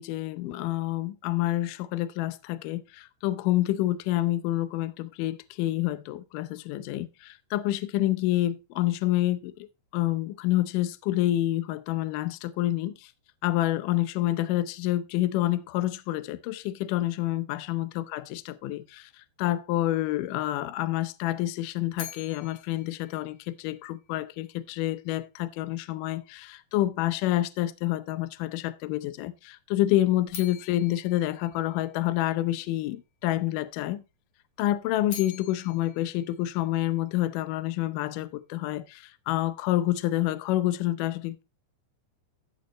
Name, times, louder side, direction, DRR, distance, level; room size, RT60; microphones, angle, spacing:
voice 1, 0.0-9.7 9.9-13.1 13.4-34.0 34.6-41.4, left 15 dB, 80° left, 2.0 m, -28 dB
sound 1, 22.0-24.1 30.3-32.4 34.8-37.2, left 7 dB, 50° left, 3.8 m, -46 dB
16.0 x 8.0 x 3.1 m
omnidirectional pair, 4.9 m